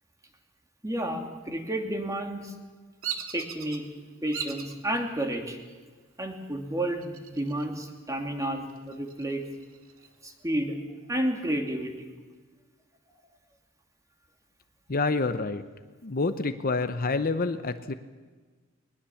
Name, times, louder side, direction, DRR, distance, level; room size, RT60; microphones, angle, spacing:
voice 1, 0.8-2.5 3.3-3.9 4.2-5.6 6.2-9.4 10.2-10.8 11.1-12.1, right 1 dB, 15° right, 3 dB, 2.6 m, -31 dB
Bird vocalization bird call bird song, 3.0-3.8 4.3-4.7 5.3-5.8 7.0-7.8 8.1-8.2 8.7-10.1, right 8 dB, 85° right, 2.1 m, -38 dB
voice 2, 14.9-15.6 16.0-17.9, left 3 dB, 45° left, 10 dB, 0.8 m, -27 dB
21.5 x 20.5 x 7.2 m, 1.4 s
head